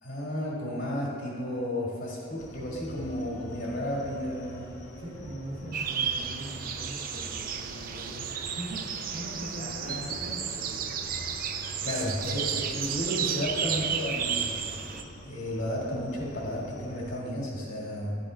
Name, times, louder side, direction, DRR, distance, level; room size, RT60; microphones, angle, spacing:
voice 1, 0.0-4.7 9.6-10.1 11.8-14.8 15.3-18.2, left 1 dB, 75° left, -5 dB, 1.7 m, -33 dB
sound 1, 2.4-17.2, left 1 dB, 40° left, 0.7 m, -45 dB
voice 2, 5.0-11.0, right 1 dB, 70° right, -3 dB, 1.4 m, -41 dB
sound 2, 5.7-15.0, right 7 dB, 45° right, 0.4 m, -33 dB
10.0 x 4.1 x 3.8 m, 2.4 s
head